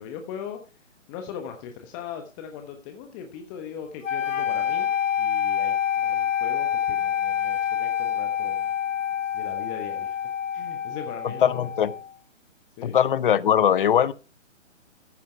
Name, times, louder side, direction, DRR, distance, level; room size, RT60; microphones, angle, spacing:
voice 1, 0.0-4.9 5.2-8.7 9.3-10.2 10.5-11.7 12.8-13.0, left 8 dB, 20° left, 1.3 m, -39 dB
sound 1, 4.0-12.1, left 9 dB, 85° left, 0.6 m, -27 dB
voice 2, 11.4-11.9 12.8-14.1, left 9 dB, 45° left, 0.7 m, -20 dB
14.5 x 9.3 x 3.4 m
figure-of-eight pair, 135°, 37 cm